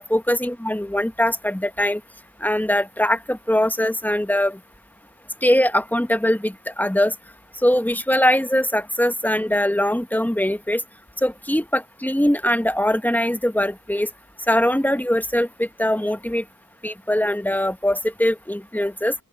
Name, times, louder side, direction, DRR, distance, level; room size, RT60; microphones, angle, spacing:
voice 1, 0.0-2.0 2.4-4.6 5.4-7.1 7.6-10.8 11.2-14.1 14.5-16.4 16.8-19.1, left 1 dB, 5° left, 1.2 m, -21 dB
open air
wide cardioid pair, 45°, 34 cm